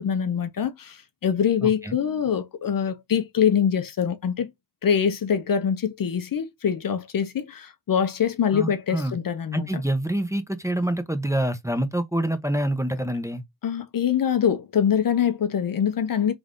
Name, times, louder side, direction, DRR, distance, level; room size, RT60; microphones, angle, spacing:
voice 1, 0.0-4.5 4.8-9.8 13.6-16.3, left 8 dB, 50° left, 0.6 m, -24 dB
voice 2, 1.6-1.9 8.5-9.1 9.5-13.4, right 1 dB, 5° right, 0.6 m, -26 dB
3.3 x 2.5 x 3.6 m
cardioid pair, 55°, 45 cm